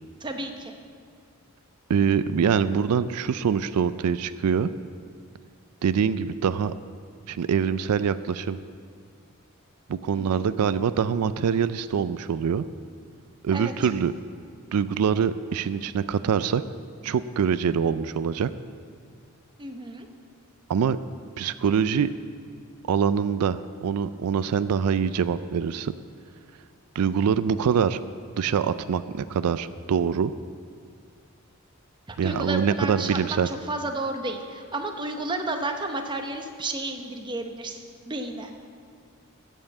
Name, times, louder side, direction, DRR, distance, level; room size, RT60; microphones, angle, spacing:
voice 1, 0.2-0.7 10.1-10.4 13.5-13.7 19.6-20.1 32.1-38.5, right 2 dB, 20° right, 4 dB, 0.8 m, -32 dB
voice 2, 1.9-4.7 5.8-6.7 7.3-8.6 9.9-12.6 13.4-14.1 14.7-16.6 17.0-18.5 20.7-21.0 21.4-22.1 22.9-25.9 27.0-28.0 28.4-30.3 32.2-33.5, right 7 dB, 90° right, 14 dB, 0.4 m, -24 dB
14.0 x 5.6 x 8.1 m, 2.3 s
head